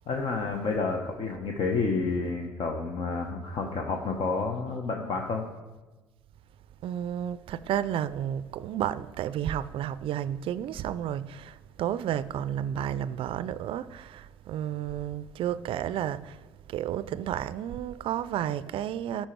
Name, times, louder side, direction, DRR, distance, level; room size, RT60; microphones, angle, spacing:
voice 1, 0.1-5.4, left 4 dB, 55° left, 0.9 m, -30 dB
voice 2, 6.8-19.3, right 10 dB, 60° right, 0.4 m, -32 dB
12.5 x 4.4 x 4.5 m
hypercardioid pair, 65°, 10 cm